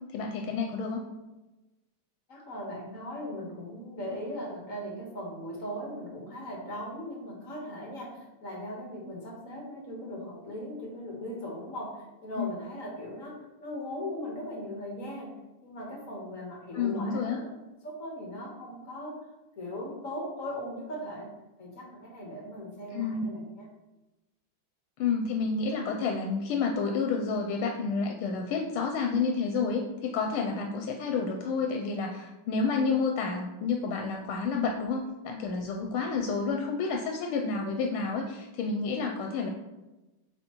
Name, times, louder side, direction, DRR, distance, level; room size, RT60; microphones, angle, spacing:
voice 1, 0.1-1.0 12.4-12.5 16.7-17.4 22.9-23.2 25.0-39.5, left 4 dB, 85° left, 2 dB, 1.5 m, -30 dB
voice 2, 2.3-15.3 15.6-17.5 17.8-19.1 19.6-21.3 21.6-23.7, equal, 45° left, -1 dB, 1.5 m, -39 dB
7.8 x 4.0 x 3.0 m, 1.0 s
omnidirectional pair, 2.3 m